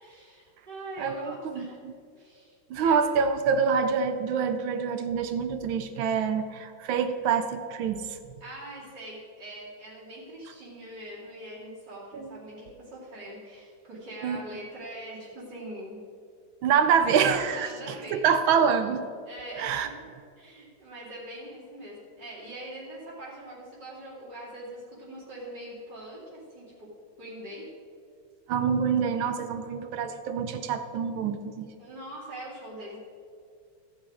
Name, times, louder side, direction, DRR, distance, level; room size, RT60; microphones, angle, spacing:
voice 1, 0.0-1.8 2.2-3.0 8.4-16.0 17.5-18.3 19.3-19.9 20.4-26.9 27.2-27.6 31.8-33.0, right 1 dB, 55° right, -7 dB, 3.1 m, -42 dB
voice 2, 1.0-1.7 2.7-8.2 12.1-12.3 14.2-14.4 16.6-19.0 19.6-19.9 28.5-31.7, right 6 dB, 75° right, 9 dB, 1.4 m, -26 dB
14.5 x 7.2 x 4.9 m, 2.3 s
omnidirectional pair, 2.3 m